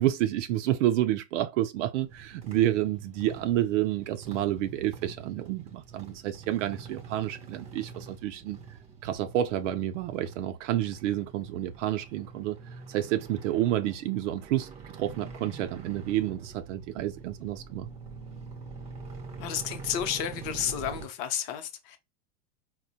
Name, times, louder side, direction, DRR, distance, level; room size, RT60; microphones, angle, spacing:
voice 1, 0.0-8.6 9.0-12.6 12.9-17.9, right 13 dB, 75° right, 0.5 m, -29 dB
sound 1, 2.0-21.1, right 5 dB, 15° right, 0.4 m, -45 dB
voice 2, 19.4-22.0, left 9 dB, 40° left, 0.7 m, -32 dB
4.2 x 2.1 x 2.7 m
supercardioid pair, 150°, 37 cm